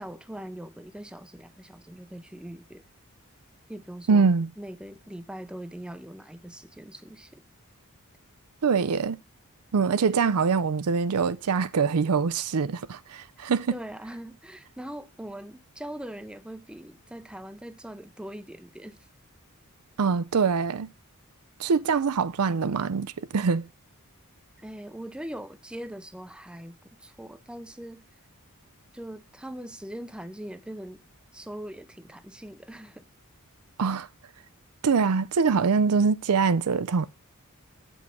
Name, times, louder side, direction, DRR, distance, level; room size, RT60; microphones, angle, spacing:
voice 1, 0.0-2.8 3.7-4.3 4.6-7.4 13.7-19.0 24.6-28.0 28.9-31.0 31.3-33.0, right 1 dB, 5° right, 0.5 m, -41 dB
voice 2, 4.1-4.5 8.6-9.2 9.7-13.7 20.0-20.9 21.6-23.7 33.8-34.1 34.8-37.1, right 5 dB, 80° right, 0.5 m, -24 dB
7.7 x 5.4 x 5.3 m
head